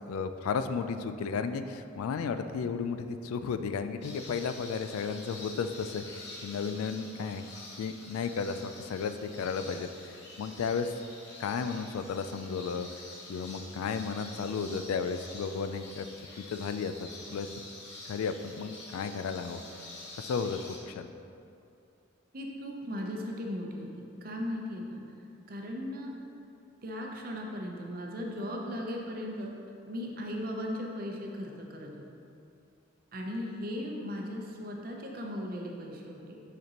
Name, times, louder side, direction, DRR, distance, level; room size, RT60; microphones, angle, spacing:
voice 1, 0.1-7.4 7.7-10.9 11.4-12.9 13.3-16.1 16.4-17.5 18.1-19.6 20.2-20.6 20.9-21.1, left 5 dB, 90° left, 9 dB, 0.3 m, -34 dB
sound 1, 4.0-20.8, left 2 dB, 50° left, 1.0 m, -47 dB
voice 2, 22.3-25.0 25.5-26.1 26.8-29.5 29.9-31.9 33.1-36.4, equal, 45° right, 0 dB, 0.6 m, -37 dB
6.5 x 5.1 x 2.9 m, 2.6 s
head